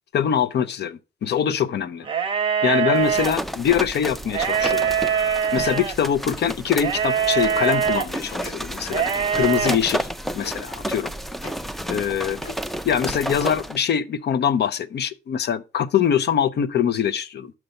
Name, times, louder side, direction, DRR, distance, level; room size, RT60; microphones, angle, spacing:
voice 1, 0.1-2.1 2.6-4.9 5.5-10.1 10.3-11.1 11.9-12.4 12.8-17.5, left 8 dB, 55° left, 0.6 m, -23 dB
sound 1, 2.0-3.3 4.3-5.9 6.8-8.1 8.9-9.8, right 7 dB, 25° right, 0.9 m, -23 dB
sound 2, 3.0-13.8, equal, ahead, 0.4 m, -31 dB
Tick-tock, 5.4-5.5 6.4-6.5 7.4-7.5 8.4-8.5 9.4-9.5 10.4-10.5 11.4-11.5 12.4-12.6, left 3 dB, 70° left, 1.8 m, -38 dB
5.9 x 5.6 x 5.2 m
cardioid pair, 145°, 21 cm